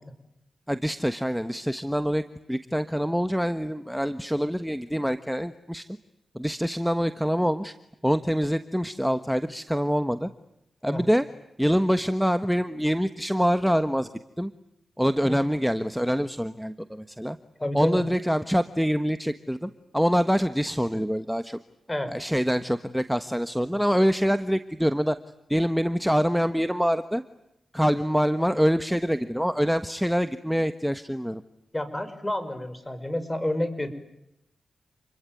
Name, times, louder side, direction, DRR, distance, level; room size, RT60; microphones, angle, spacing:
voice 1, 0.7-2.2 2.5-5.8 6.3-7.7 8.0-10.3 10.8-11.2 11.6-14.1 14.4-14.5 15.0-17.4 17.7-21.6 22.1-25.2 25.5-27.2 27.7-31.4, equal, ahead, 10 dB, 1.4 m, -25 dB
voice 2, 17.6-18.0 21.9-22.1 31.7-33.9, left 1 dB, 20° left, 11 dB, 5.2 m, -29 dB
29.0 x 21.5 x 9.3 m, 0.86 s
cardioid pair, 45°, 0 cm